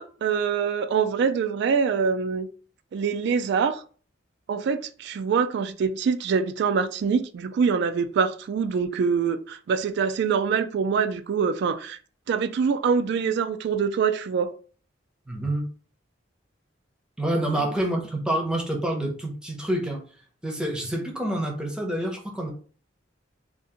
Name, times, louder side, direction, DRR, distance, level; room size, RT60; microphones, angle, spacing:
voice 1, 0.0-2.5 2.9-3.8 4.5-12.0 12.3-14.5 17.5-17.7, right 6 dB, 60° right, 0.3 m, -24 dB
voice 2, 15.3-15.7 17.2-20.0 20.4-22.5, right 1 dB, 5° right, 0.7 m, -27 dB
2.7 x 2.5 x 3.6 m
head